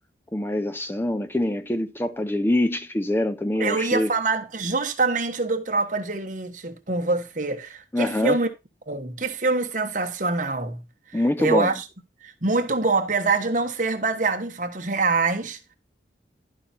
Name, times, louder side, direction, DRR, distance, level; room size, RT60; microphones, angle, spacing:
voice 1, 0.3-4.1 7.9-8.4 11.1-11.7, left 1 dB, 10° left, 0.5 m, -24 dB
voice 2, 3.6-8.5 8.9-10.8 11.1-11.8 12.2-15.6, right 3 dB, 45° right, 1.3 m, -25 dB
12.0 x 5.7 x 4.3 m
head